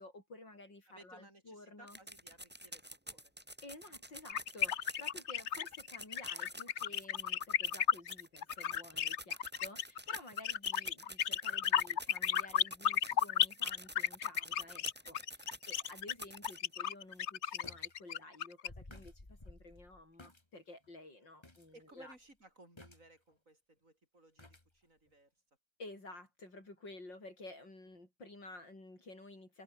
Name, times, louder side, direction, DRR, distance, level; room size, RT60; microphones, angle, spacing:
voice 1, 0.0-2.0 3.6-22.2 25.8-29.6, left 2 dB, 90° left, 8.8 m, -53 dB
voice 2, 0.9-3.3 21.7-25.3, right 2 dB, 45° right, 8.5 m, -61 dB
sound 1, 1.9-16.7 17.1-17.2 17.5-17.6, right 1 dB, 5° right, 2.3 m, -50 dB
sound 2, 4.3-18.7, left 9 dB, 50° left, 0.9 m, -34 dB
sound 3, 16.4-16.5 17.6-18.0 18.2-18.3 18.7-20.4 20.8-20.9 21.4-21.7 22.0-22.2 22.8-23.3 24.4-24.7 25.1-25.2, left 2 dB, 15° left, 2.1 m, -55 dB
omnidirectional pair, 1.9 m